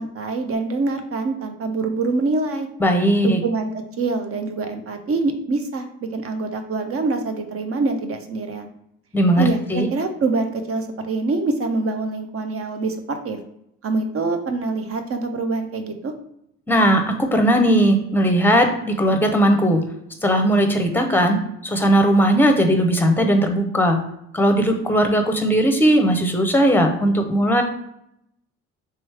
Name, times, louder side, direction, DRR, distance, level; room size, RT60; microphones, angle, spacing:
voice 1, 0.0-2.7 3.2-3.7 4.0-8.7 9.4-13.4 13.8-16.1, right 3 dB, 45° right, 6 dB, 0.7 m, -25 dB
voice 2, 2.8-3.4 9.1-9.9 16.7-19.9 20.2-24.0 24.3-27.6, right 1 dB, 5° left, 5 dB, 0.8 m, -18 dB
3.5 x 3.1 x 3.3 m, 0.77 s
supercardioid pair, 75°, 32 cm